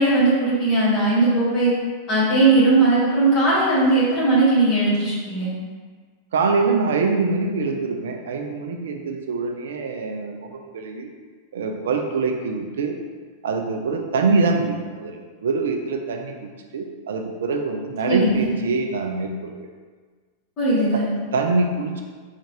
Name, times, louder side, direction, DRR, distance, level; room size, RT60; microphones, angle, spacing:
voice 1, 0.0-1.7 2.1-5.5 18.0-18.5 20.6-21.1, right 2 dB, 35° left, -8 dB, 1.5 m, -18 dB
voice 2, 6.3-11.1 11.5-13.0 13.4-19.7 20.9-22.0, right 4 dB, 60° right, 3 dB, 0.3 m, -24 dB
3.9 x 2.4 x 2.9 m, 1.5 s
figure-of-eight pair, 90°, 0 cm